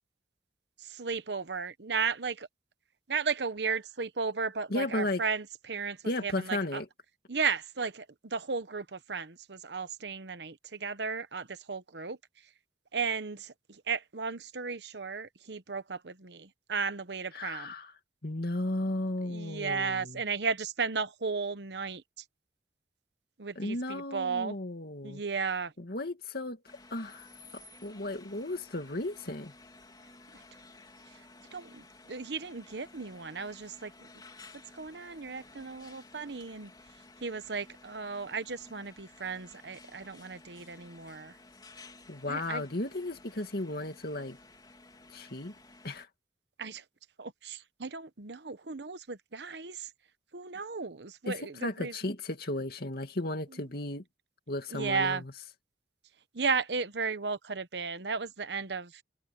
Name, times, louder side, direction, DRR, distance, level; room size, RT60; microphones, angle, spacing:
voice 1, 0.8-2.5 3.1-6.8 7.3-12.2 12.9-17.7 19.2-22.0 23.4-24.6 25.0-25.7 30.3-30.4 31.5-34.1 34.7-36.7 37.2-41.3 42.3-42.6 46.6-46.8 47.2-49.9 50.3-51.9 53.5-53.6 54.7-55.2 56.3-59.0, right 5 dB, 70° right, 1.1 m, -35 dB
voice 2, 4.7-5.2 6.0-6.9 17.3-17.9 18.2-20.2 23.6-25.2 25.8-26.6 26.9-27.3 27.8-29.5 42.1-44.4 45.1-45.5 45.8-46.1 51.3-54.0 54.5-55.3, left 1 dB, 60° left, 2.4 m, -34 dB
sound 1, 26.6-46.0, left 2 dB, 25° left, 3.7 m, -54 dB
head